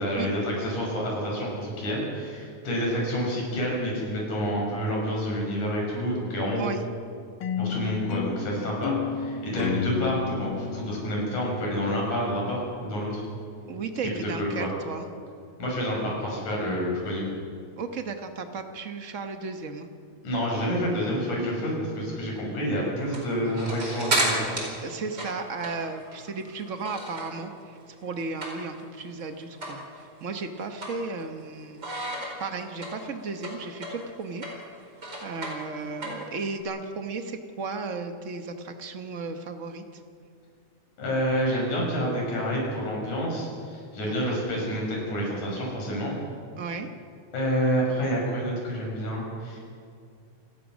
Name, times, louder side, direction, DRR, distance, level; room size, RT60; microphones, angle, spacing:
voice 1, 0.0-6.7 7.6-13.2 14.4-14.7 15.6-17.3 20.2-24.7 41.0-46.2 47.3-49.6, equal, 85° left, -2 dB, 7.5 m, -28 dB
sound 1, 7.4-12.5, left 7 dB, 60° left, 1.3 m, -32 dB
voice 2, 13.7-15.1 17.8-19.9 24.8-31.9 32.4-34.5 35.2-40.0 44.0-44.4 46.6-46.9, right 4 dB, 85° right, 6 dB, 0.6 m, -35 dB
sound 2, 23.0-27.5 27.8-28.9 29.2-29.3 29.6-29.8 30.2-31.4 31.8-36.6, right 1 dB, 35° right, 5.1 m, -32 dB
28.0 x 18.0 x 6.3 m, 2.3 s
omnidirectional pair, 3.4 m